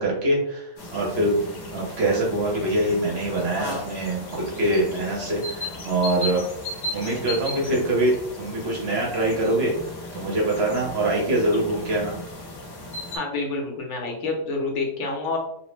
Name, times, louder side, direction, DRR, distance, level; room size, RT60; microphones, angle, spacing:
voice 1, 0.0-1.3 1.7-6.4 6.9-12.2, right 1 dB, 60° right, -2 dB, 0.9 m, -24 dB
sound 1, 0.8-13.2, left 1 dB, 50° left, 0.6 m, -36 dB
voice 2, 13.1-15.4, left 3 dB, 70° left, 0 dB, 0.9 m, -28 dB
2.5 x 2.0 x 3.0 m, 0.78 s
omnidirectional pair, 1.4 m